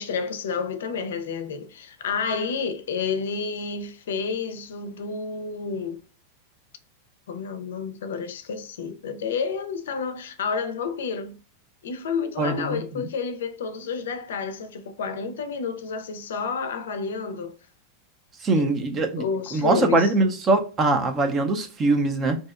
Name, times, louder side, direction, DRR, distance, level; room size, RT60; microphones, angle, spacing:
voice 1, 0.0-6.0 7.3-11.4 11.8-17.6 18.6-18.7 19.2-20.1, left 5 dB, 85° left, 0.4 m, -30 dB
voice 2, 12.4-13.1 18.4-19.2 19.5-22.4, right 2 dB, 25° right, 0.4 m, -22 dB
2.6 x 2.0 x 2.4 m
supercardioid pair, 135°, 0 cm